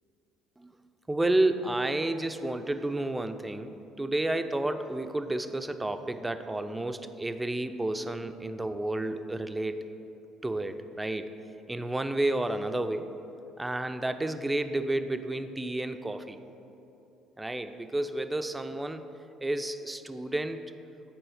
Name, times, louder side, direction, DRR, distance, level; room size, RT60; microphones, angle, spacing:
voice 1, 1.1-9.9 10.4-11.3 11.7-13.1 13.6-16.4 17.4-19.1 19.4-20.6, right 1 dB, 15° right, 9 dB, 0.4 m, -31 dB
6.3 x 4.2 x 4.9 m, 3.0 s
hypercardioid pair, 55°, 0 cm